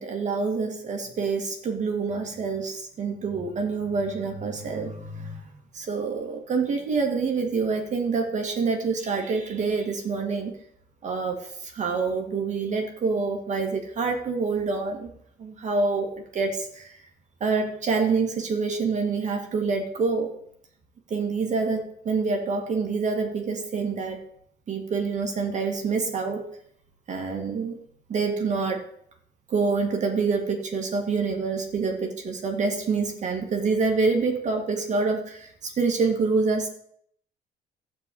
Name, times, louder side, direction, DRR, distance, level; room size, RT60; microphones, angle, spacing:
voice 1, 0.0-10.5 11.0-15.1 15.4-17.0 17.4-20.3 21.1-24.2 24.7-26.5 27.1-27.8 28.1-28.9 29.5-36.7, right 4 dB, 45° right, 2 dB, 2.0 m, -27 dB
13.0 x 4.7 x 8.4 m, 0.68 s
cardioid pair, 110°, 17 cm